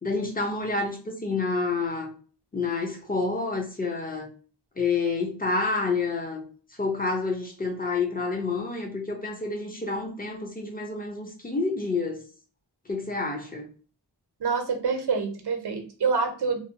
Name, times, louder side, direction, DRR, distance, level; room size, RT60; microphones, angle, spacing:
voice 1, 0.0-2.1 2.5-4.3 4.8-6.5 6.8-12.2 12.9-13.7, left 3 dB, 20° left, 2 dB, 0.8 m, -28 dB
voice 2, 14.4-16.6, right 5 dB, 70° right, 4 dB, 0.7 m, -26 dB
2.6 x 2.1 x 2.7 m, 0.38 s
wide cardioid pair, 65°, 42 cm